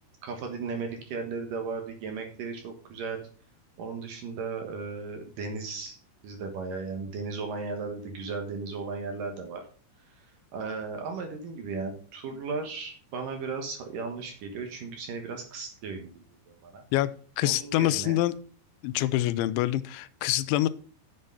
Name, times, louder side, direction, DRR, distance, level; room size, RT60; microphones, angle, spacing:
voice 1, 0.2-3.3 3.8-6.0 6.2-9.6 10.1-10.3 10.5-16.8 17.4-18.2 20.3-20.4, right 4 dB, 65° right, 4 dB, 2.4 m, -36 dB
voice 2, 17.4-18.3 18.8-20.7, left 14 dB, 85° left, 16 dB, 3.0 m, -25 dB
8.9 x 7.7 x 5.4 m, 0.41 s
omnidirectional pair, 5.2 m